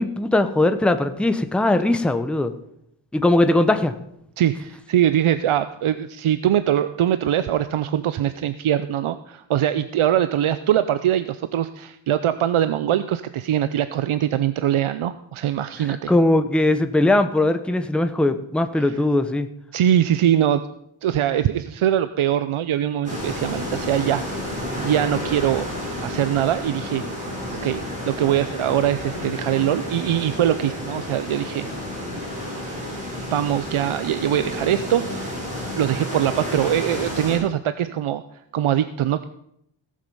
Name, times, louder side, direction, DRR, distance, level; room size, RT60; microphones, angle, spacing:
voice 1, 0.0-2.5 3.1-3.9 15.9-19.5, left 2 dB, ahead, 9 dB, 0.7 m, -20 dB
voice 2, 4.4-16.1 18.8-18.9 19.7-20.6 21.0-25.7 26.0-27.0 27.6-31.7 33.3-35.4 35.8-38.2 38.5-39.2, right 11 dB, 90° right, 12 dB, 0.6 m, -22 dB
sound 1, 23.0-37.4, left 1 dB, 15° right, 4.9 m, -31 dB
17.0 x 7.6 x 5.4 m, 0.74 s
wide cardioid pair, 135°, 48 cm